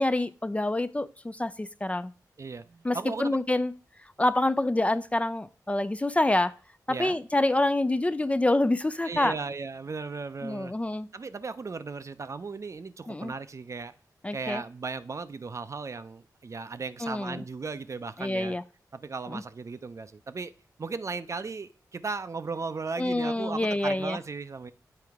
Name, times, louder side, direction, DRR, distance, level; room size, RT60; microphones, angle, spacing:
voice 1, 0.0-2.1 2.8-3.7 4.2-6.5 6.9-9.3 10.4-11.1 13.1-13.3 14.2-14.6 17.0-17.4 18.2-18.6 19.3-19.4 23.0-24.2, left 2 dB, 20° left, 14 dB, 0.3 m, -27 dB
voice 2, 2.4-3.4 6.9-7.2 9.0-10.7 11.1-13.9 14.3-18.6 18.9-20.5 20.8-24.7, right 4 dB, 45° right, 13 dB, 0.5 m, -36 dB
7.7 x 4.4 x 3.5 m, 0.39 s
cardioid pair, 55°, 7 cm